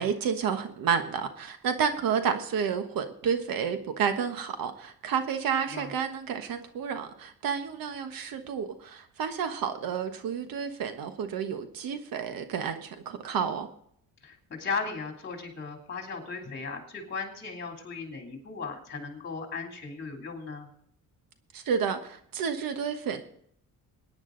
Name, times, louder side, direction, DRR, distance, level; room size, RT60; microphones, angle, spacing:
voice 1, 0.0-13.7 21.5-23.2, right 7 dB, 75° right, 8 dB, 1.3 m, -30 dB
voice 2, 14.2-20.7, left 4 dB, 30° left, 2 dB, 3.1 m, -36 dB
21.5 x 9.9 x 3.9 m, 0.66 s
cardioid pair, 145°, 35 cm